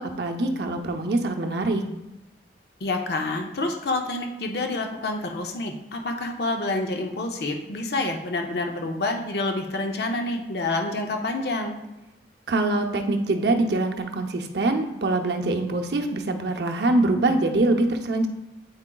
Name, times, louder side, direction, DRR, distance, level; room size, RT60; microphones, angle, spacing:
voice 1, 0.0-1.8 12.5-18.3, right 2 dB, 70° right, 4 dB, 0.6 m, -24 dB
voice 2, 2.8-11.8, left 2 dB, 65° left, 3 dB, 0.6 m, -28 dB
8.7 x 4.8 x 2.3 m, 0.94 s
head